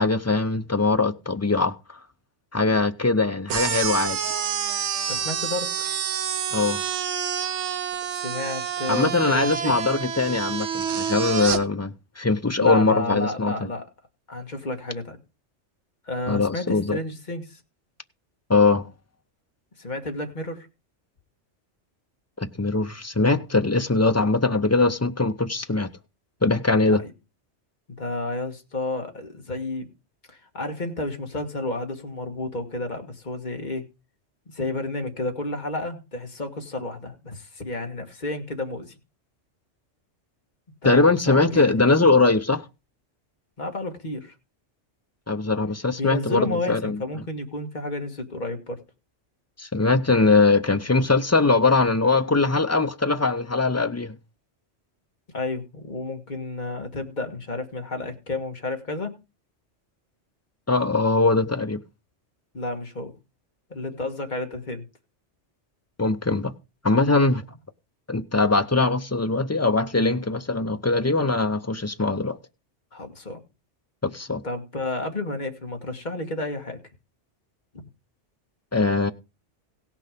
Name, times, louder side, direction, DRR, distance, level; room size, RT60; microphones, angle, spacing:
voice 1, 0.0-1.7 2.5-4.2 6.5-6.8 8.9-13.7 16.3-17.0 18.5-18.9 22.4-25.9 26.4-27.0 40.8-42.6 45.3-47.0 49.6-54.1 60.7-61.8 66.0-66.5 66.8-67.4 68.1-72.4 74.0-74.4 78.7-79.1, left 3 dB, 25° left, 0.4 m, -21 dB
sound 1, 3.5-11.6, right 8 dB, 75° right, 1.1 m, -28 dB
voice 2, 5.1-5.9 8.1-9.8 12.6-13.9 14.3-15.2 16.1-17.6 19.8-20.7 26.9-27.1 28.0-29.9 30.3-33.8 34.5-38.9 40.8-41.7 43.6-44.3 46.0-48.8 55.3-59.1 62.5-63.1 63.7-64.8 72.9-73.4 74.4-76.8, left 2 dB, 40° left, 1.8 m, -31 dB
16.5 x 6.0 x 5.1 m
omnidirectional pair, 1.2 m